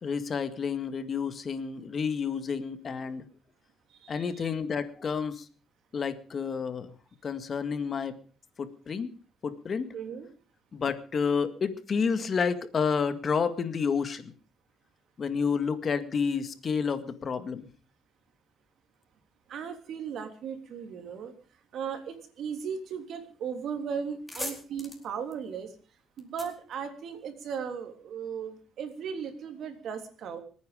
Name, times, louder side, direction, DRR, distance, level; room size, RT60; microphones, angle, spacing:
voice 1, 0.0-3.3 4.1-5.5 5.9-6.9 7.2-8.1 8.6-9.1 9.4-9.9 10.7-14.3 15.2-17.7, left 6 dB, 45° left, 10 dB, 2.0 m, -30 dB
voice 2, 3.9-4.5 9.9-10.3 19.5-21.3 21.7-25.7 26.2-30.4, right 7 dB, 70° right, 7 dB, 3.3 m, -37 dB
sound 1, 24.0-27.6, left 1 dB, 10° left, 4.4 m, -42 dB
26.0 x 9.6 x 5.1 m, 0.38 s
cardioid pair, 90°, 0 cm